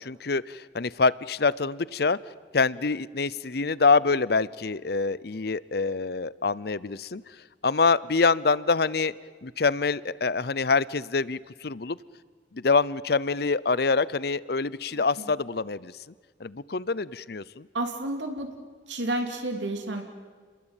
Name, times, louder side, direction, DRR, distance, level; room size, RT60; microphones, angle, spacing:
voice 1, 0.0-2.2 2.5-7.2 7.6-9.1 9.4-12.0 12.5-15.9 16.4-17.7, left 4 dB, 55° left, 20 dB, 0.7 m, -25 dB
voice 2, 14.9-15.3 17.7-18.5 18.9-20.0, right 1 dB, 80° right, 4 dB, 3.2 m, -31 dB
30.0 x 21.5 x 9.1 m, 1.5 s
head